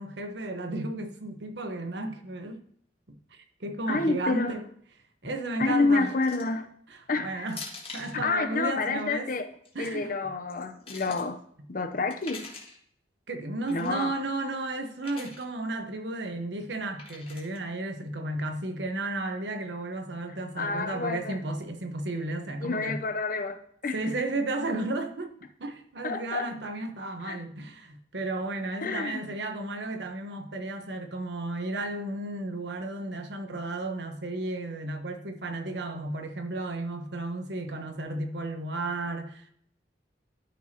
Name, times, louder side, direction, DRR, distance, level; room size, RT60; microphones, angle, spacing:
voice 1, 0.0-2.6 3.1-4.7 5.2-6.1 6.9-7.6 7.9-9.3 9.7-10.1 13.3-23.0 23.9-25.3 25.6-39.5, right 2 dB, 75° right, 1.1 m, -33 dB
voice 2, 3.9-4.5 5.6-6.7 7.1-7.5 8.1-9.5 9.8-11.4 11.7-12.5 13.7-14.1 20.6-21.4 22.6-24.0 26.0-26.5 27.2-27.4 28.8-29.2, left 3 dB, 50° left, 0.7 m, -28 dB
sound 1, 6.2-6.6 7.5-8.2 9.5-9.9 10.5-11.2 12.1-12.8 13.7-14.0 15.0-15.4 17.0-17.6, left 4 dB, 30° left, 1.6 m, -44 dB
12.5 x 4.7 x 2.9 m
head